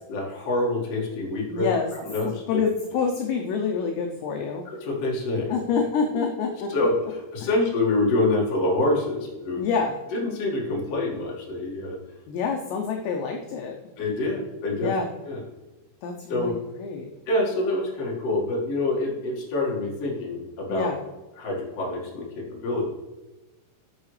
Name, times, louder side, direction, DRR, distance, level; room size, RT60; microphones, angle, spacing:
voice 1, 0.1-1.7 2.0-2.6 4.7-5.5 6.7-9.6 10.1-12.0 14.0-14.9 15.2-15.4 16.3-16.5 17.3-20.9 21.4-22.9, left 2 dB, 55° left, -3 dB, 1.8 m, -26 dB
voice 2, 1.5-1.9 2.2-4.6 5.5-6.7 9.6-10.0 12.3-13.8 14.8-15.1 16.0-17.1 20.7-21.0, left 5 dB, 85° left, 2 dB, 2.5 m, -27 dB
12.0 x 6.6 x 3.3 m, 1.1 s
omnidirectional pair, 5.9 m